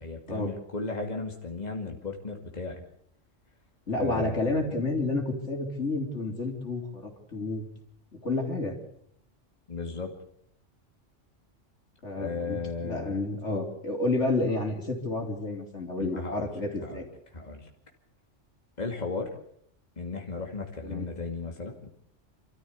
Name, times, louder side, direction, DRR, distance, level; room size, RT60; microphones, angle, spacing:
voice 1, 0.0-2.8 3.9-4.6 9.7-10.1 12.2-13.2 16.0-16.5 16.8-17.0 17.3-17.7 18.8-19.3 20.0-21.9, left 3 dB, 35° left, 2 dB, 2.5 m, -35 dB
voice 2, 3.9-7.7 8.2-8.8 12.0-17.1 20.8-21.1, left 2 dB, 70° left, 2 dB, 4.1 m, -30 dB
28.0 x 13.5 x 8.3 m, 0.70 s
omnidirectional pair, 1.3 m